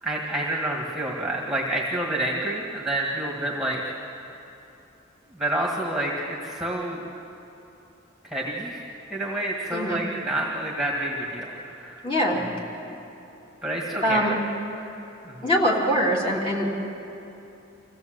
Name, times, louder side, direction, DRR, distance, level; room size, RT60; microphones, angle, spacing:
voice 1, 0.0-3.9 5.3-7.1 8.2-8.8 9.1-12.0 13.6-14.2 14.9-15.0 15.2-15.4, right 1 dB, ahead, -2 dB, 1.8 m, -28 dB
voice 2, 9.7-10.0 12.0-12.5 14.0-14.4 15.4-16.7, equal, 30° left, -3 dB, 3.1 m, -23 dB
26.0 x 16.5 x 7.9 m, 2.9 s
head